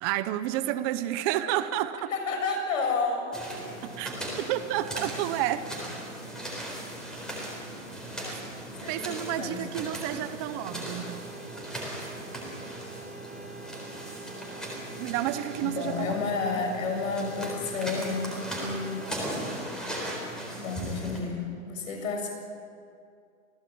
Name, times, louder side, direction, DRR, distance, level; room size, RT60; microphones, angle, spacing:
voice 1, 0.0-2.1 4.0-4.1 4.5-5.7 8.3-8.4 8.9-11.2 11.9-12.1 15.0-16.2, right 13 dB, 20° right, 12 dB, 0.7 m, -30 dB
voice 2, 2.1-3.5 8.2-8.5 8.8-9.7 15.6-19.0 20.6-22.3, left 4 dB, 70° left, 3 dB, 7.1 m, -31 dB
sound 1, 3.3-21.2, right 1 dB, ahead, 4.0 m, -38 dB
sound 2, 10.5-19.0, right 5 dB, 35° left, 7.1 m, -46 dB
27.5 x 17.5 x 8.6 m, 2.4 s
hypercardioid pair, 165°, 41 cm